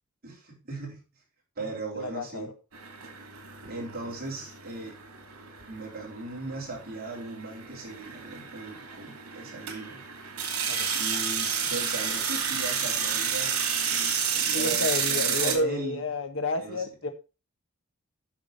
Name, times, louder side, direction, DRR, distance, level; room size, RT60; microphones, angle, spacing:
voice 1, 0.2-1.0 1.6-2.5 3.7-5.0 5.7-10.1 10.9-16.0 16.6-16.9, right 2 dB, 45° right, 4.0 m, -38 dB
voice 2, 1.9-2.5 10.7-10.9 14.5-17.1, left 2 dB, 65° left, 1.5 m, -30 dB
sound 1, 2.7-15.5, right 6 dB, 80° right, 2.7 m, -31 dB
8.9 x 6.3 x 5.3 m
head